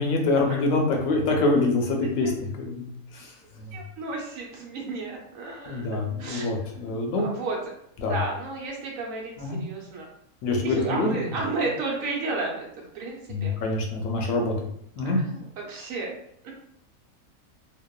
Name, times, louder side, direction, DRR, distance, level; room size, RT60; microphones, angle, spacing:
voice 1, 0.0-2.9 3.1-3.3 5.7-7.3 8.0-8.2 9.4-9.7 10.4-11.2 13.3-14.5 15.0-15.2, left 2 dB, 75° left, 1 dB, 1.0 m, -25 dB
voice 2, 3.7-5.9 6.2-6.5 7.2-7.6 8.0-10.1 10.6-12.7 12.9-13.5 15.0-16.1 16.4-16.5, right 3 dB, 70° right, -1 dB, 1.0 m, -32 dB
2.9 x 2.0 x 2.2 m, 0.71 s
omnidirectional pair, 1.5 m